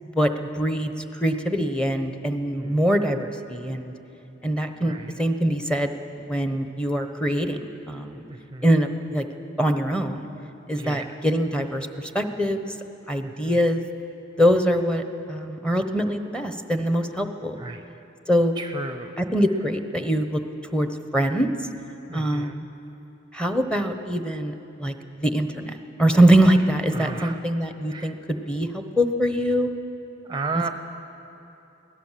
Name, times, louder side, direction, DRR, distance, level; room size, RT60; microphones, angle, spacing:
voice 1, 0.0-3.9 4.4-5.9 6.2-8.2 8.6-9.2 9.6-10.3 10.7-12.7 13.1-13.8 14.4-17.6 18.3-18.5 19.2-20.4 20.7-21.6 22.1-22.7 23.3-24.5 24.8-29.7, equal, 5° left, 7 dB, 1.0 m, -23 dB
voice 2, 10.7-11.1 13.2-13.5 17.6-17.8 18.6-19.2 22.1-22.6 26.9-27.4 27.9-28.1 30.3-30.7, right 3 dB, 25° right, 8 dB, 0.6 m, -33 dB
22.5 x 17.0 x 7.5 m, 3.0 s
head